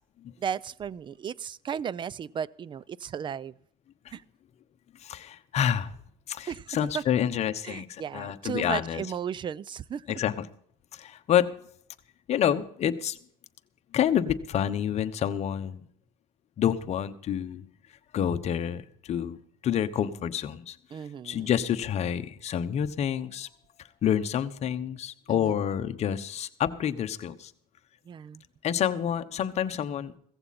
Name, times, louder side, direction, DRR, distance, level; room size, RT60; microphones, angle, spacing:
voice 1, 0.4-3.5 4.1-4.2 6.5-7.0 7.6-10.2 20.9-21.5 25.3-25.6 28.1-28.4, right 8 dB, 30° right, 23 dB, 0.5 m, -35 dB
voice 2, 5.0-5.9 6.3-9.0 10.1-10.4 10.9-11.5 12.3-13.2 13.9-15.8 16.6-17.6 18.1-19.4 19.6-20.8 21.2-23.5 24.0-27.5 28.6-30.1, left 9 dB, 40° left, 11 dB, 1.1 m, -28 dB
16.5 x 15.0 x 4.3 m, 0.64 s
cardioid pair, 120°, 16 cm